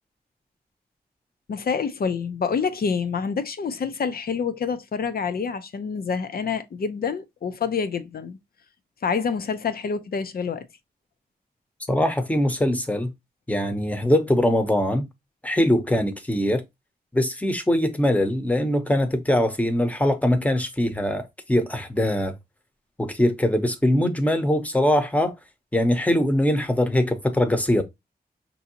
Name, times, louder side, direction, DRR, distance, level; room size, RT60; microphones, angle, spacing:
voice 1, 1.5-8.4 9.0-10.7, left 6 dB, 65° left, 0.6 m, -27 dB
voice 2, 11.9-13.1 13.5-15.1 15.4-16.6 17.1-21.2 21.5-22.3 23.0-25.3 25.7-27.8, left 1 dB, 10° left, 0.8 m, -22 dB
5.4 x 2.7 x 2.8 m
wide cardioid pair, 85°, 16 cm